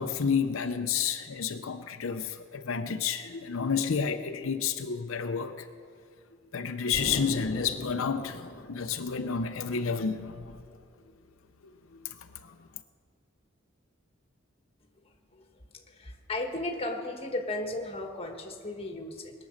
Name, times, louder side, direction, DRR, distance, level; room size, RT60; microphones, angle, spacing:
voice 1, 0.0-5.5 6.5-10.5, left 6 dB, 85° left, 7 dB, 0.6 m, -30 dB
Explosion, 6.9-9.6, left 2 dB, 50° left, 0.9 m, -39 dB
voice 2, 15.7-19.3, left 2 dB, 30° left, 3 dB, 1.4 m, -35 dB
20.5 x 7.6 x 6.4 m, 2.1 s
head